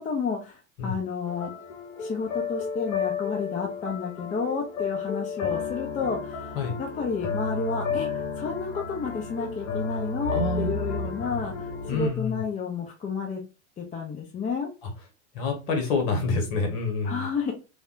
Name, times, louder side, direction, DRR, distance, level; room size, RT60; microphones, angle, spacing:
voice 1, 0.0-1.5 2.0-8.1 8.4-13.4 13.8-14.7 17.0-17.5, left 5 dB, 20° left, 1 dB, 0.6 m, -31 dB
sound 1, 1.3-12.1, left 5 dB, 80° left, 0.8 m, -32 dB
voice 2, 10.3-10.8 11.9-12.4 15.3-17.3, left 3 dB, 55° left, 4 dB, 1.3 m, -27 dB
3.3 x 2.3 x 2.4 m, 0.31 s
hypercardioid pair, 95°, 37 cm